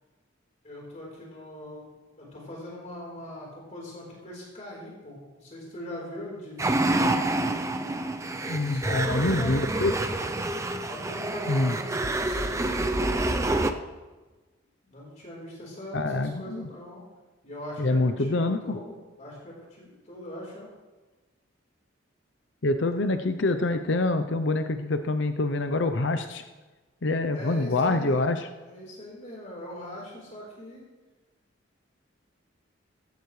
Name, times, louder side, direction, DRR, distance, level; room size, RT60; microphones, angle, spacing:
voice 1, 0.6-1.9 2.2-7.4 8.6-10.3 10.8-13.8 14.8-17.0 17.4-20.7 27.3-28.3 28.6-30.8, left 1 dB, 40° left, -4 dB, 4.1 m, -41 dB
sound 1, 6.6-13.7, right 2 dB, 15° right, 0.6 m, -27 dB
voice 2, 8.5-9.9 11.5-11.8 15.9-16.7 17.8-18.8 22.6-26.4 27.0-28.4, left 2 dB, 65° left, 8 dB, 0.7 m, -26 dB
16.5 x 15.0 x 3.3 m, 1.2 s
head